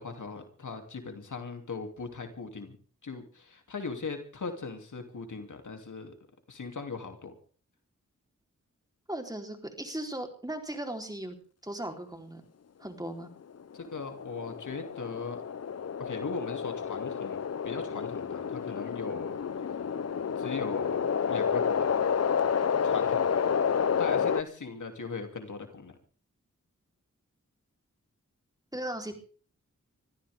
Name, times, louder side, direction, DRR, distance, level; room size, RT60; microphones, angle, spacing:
voice 1, 0.0-2.8 3.0-6.1 6.5-7.3 13.7-15.4 16.0-17.4 17.6-19.4 20.3-21.9 22.8-23.4 24.0-25.9, left 4 dB, 75° left, 5 dB, 3.0 m, -39 dB
voice 2, 9.1-11.4 11.6-12.4 12.8-13.3 28.7-29.1, right 1 dB, 10° right, 4 dB, 3.9 m, -37 dB
sound 1, 13.6-24.4, left 7 dB, 55° left, 0.7 m, -30 dB
24.0 x 15.0 x 3.7 m, 0.41 s
cardioid pair, 55°, 31 cm